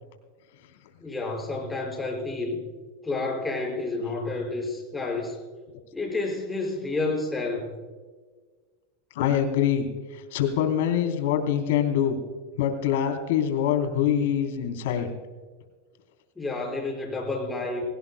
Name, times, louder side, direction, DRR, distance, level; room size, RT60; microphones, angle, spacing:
voice 1, 1.0-2.7 3.0-5.4 5.9-7.7 16.4-17.8, left 3 dB, 10° left, -1 dB, 5.5 m, -30 dB
voice 2, 9.1-12.2 12.6-15.1, left 9 dB, 75° left, 5 dB, 3.4 m, -25 dB
23.0 x 17.5 x 2.2 m, 1.5 s
supercardioid pair, 145°, 0 cm